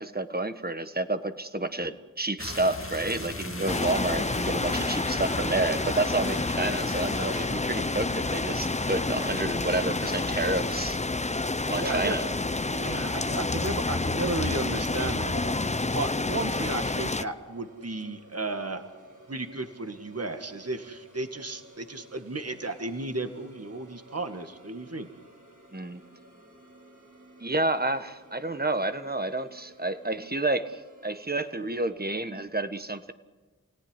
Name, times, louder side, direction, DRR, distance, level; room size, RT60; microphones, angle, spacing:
voice 1, 0.0-11.0 11.7-12.3 25.7-26.0 27.4-33.1, right 2 dB, 30° right, 10 dB, 1.5 m, -30 dB
sound 1, 2.4-10.8, left 2 dB, 45° left, 2.0 m, -39 dB
sound 2, 3.7-17.2, left 3 dB, 20° left, 0.7 m, -29 dB
voice 2, 11.8-12.2 12.7-15.6 15.9-18.8 19.3-25.1, right 2 dB, 50° right, 6 dB, 2.0 m, -34 dB
sound 3, 12.4-31.9, right 1 dB, 75° right, 6.1 m, -55 dB
29.0 x 18.0 x 9.9 m, 1.4 s
wide cardioid pair, 50°, 31 cm